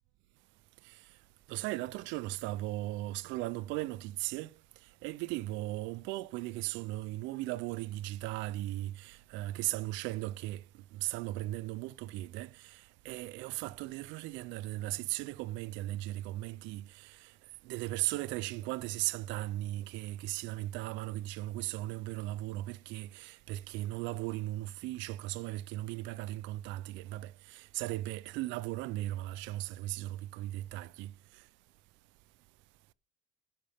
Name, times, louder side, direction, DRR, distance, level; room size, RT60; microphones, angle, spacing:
voice 1, 1.5-4.5 5.0-10.6 10.9-17.3 17.6-31.1, right 17 dB, 65° right, 0.5 m, -37 dB
16.0 x 6.4 x 3.4 m
cardioid pair, 150°, 21 cm